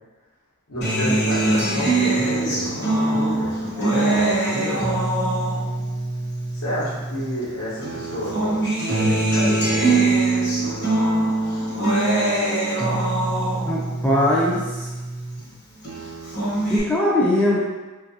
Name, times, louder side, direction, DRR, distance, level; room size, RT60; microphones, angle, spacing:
voice 1, 0.7-5.0 6.5-8.6 8.9-10.2, equal, 75° left, -7 dB, 1.0 m, -30 dB
Acoustic guitar, 0.8-7.5 7.8-15.4 15.8-16.8, right 2 dB, 55° left, 1.1 m, -23 dB
voice 2, 13.6-14.9 16.7-17.6, left 1 dB, 10° left, -6 dB, 0.5 m, -20 dB
3.4 x 2.5 x 2.6 m, 1.2 s
head